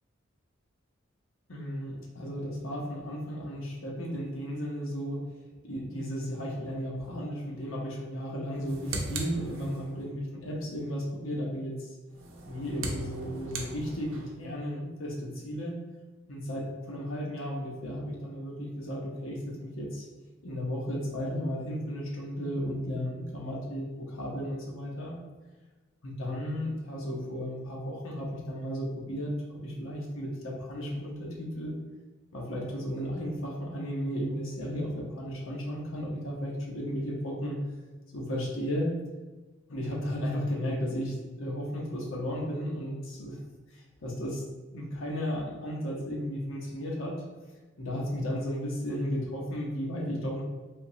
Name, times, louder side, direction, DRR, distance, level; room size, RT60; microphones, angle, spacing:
voice 1, 1.5-5.2 5.7-11.9 12.5-15.8 16.3-20.0 20.4-25.1 26.0-31.7 32.3-37.6 38.1-38.9 39.7-43.4 43.7-44.4 44.7-47.2 47.8-50.4, equal, 85° left, -2 dB, 0.8 m, -34 dB
sound 1, 8.5-10.1 12.1-14.4, right 2 dB, 75° right, 0.6 m, -38 dB
3.5 x 2.9 x 2.7 m, 1.2 s
head